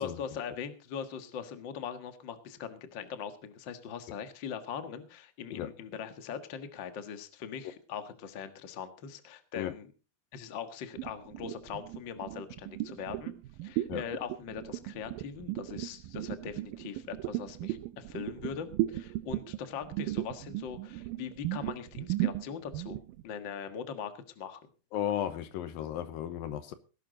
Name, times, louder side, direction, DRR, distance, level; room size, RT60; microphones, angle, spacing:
voice 1, 0.0-9.9 10.3-13.3 13.6-23.0 23.2-24.6, left 7 dB, 50° left, 1.4 m, -41 dB
sound 1, 11.0-23.2, right 16 dB, 75° right, 2.3 m, -36 dB
voice 2, 24.9-26.7, left 11 dB, 75° left, 2.6 m, -34 dB
18.5 x 11.5 x 4.0 m
omnidirectional pair, 4.4 m